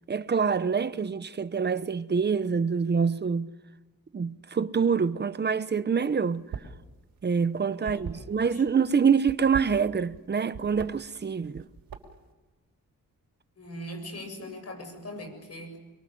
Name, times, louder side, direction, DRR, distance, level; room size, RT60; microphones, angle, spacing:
voice 1, 0.1-3.5 4.1-6.5 7.2-11.7, right 6 dB, 30° right, 0.8 m, -26 dB
sound 1, 6.4-6.8 7.1-8.7 9.2-10.2 10.5-10.9 11.4-12.3, right 7 dB, 85° right, 3.9 m, -39 dB
voice 2, 7.8-8.6 13.6-15.8, equal, 45° left, 7.2 m, -41 dB
28.5 x 23.5 x 7.8 m
wide cardioid pair, 135°, 34 cm